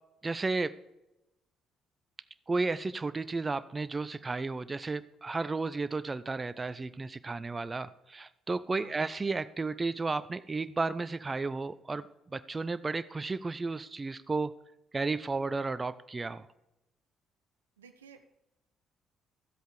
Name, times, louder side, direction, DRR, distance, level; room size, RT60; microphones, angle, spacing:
voice 1, 0.2-0.7 2.5-12.0 12.3-14.5 14.9-16.5, right 3 dB, 25° right, 15 dB, 0.5 m, -33 dB
voice 2, 8.7-9.0 17.8-18.3, right 6 dB, 80° right, 7 dB, 0.6 m, -54 dB
12.5 x 7.9 x 4.8 m, 0.91 s
figure-of-eight pair, 45°, 0 cm